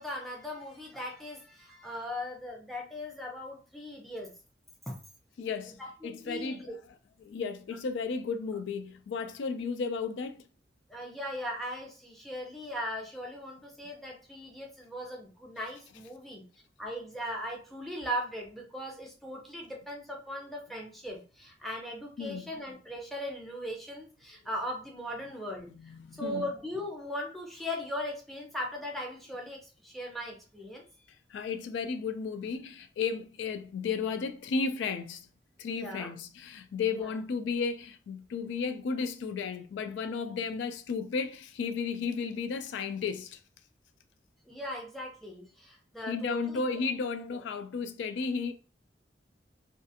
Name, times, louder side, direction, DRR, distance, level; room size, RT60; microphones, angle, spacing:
voice 1, 0.0-4.3 4.9-5.0 5.8-6.7 10.9-16.4 16.8-30.8 35.7-36.1 36.9-37.1 44.5-46.6 47.3-47.4, equal, ahead, 0.6 m, -39 dB
voice 2, 5.4-5.8 6.0-6.7 7.2-10.4 22.2-22.5 25.7-26.4 31.3-35.3 35.6-43.4 46.1-48.5, left 5 dB, 85° left, 0.3 m, -33 dB
2.4 x 2.4 x 2.6 m
head